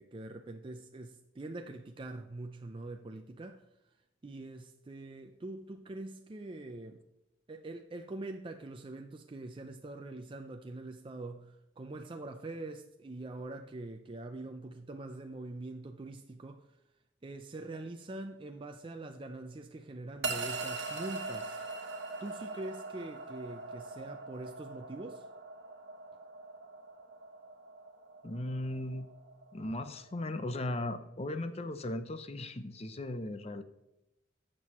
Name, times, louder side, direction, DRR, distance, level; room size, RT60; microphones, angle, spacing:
voice 1, 0.0-3.6 4.2-7.0 7.5-16.6 17.2-21.6 22.2-25.3 26.1-26.2, right 2 dB, 25° right, 0.4 m, -44 dB
sound 1, 20.2-30.6, right 3 dB, 70° right, 1.4 m, -42 dB
voice 2, 28.2-29.1 29.5-33.6, left 1 dB, 35° left, 0.6 m, -37 dB
12.0 x 7.6 x 3.0 m
head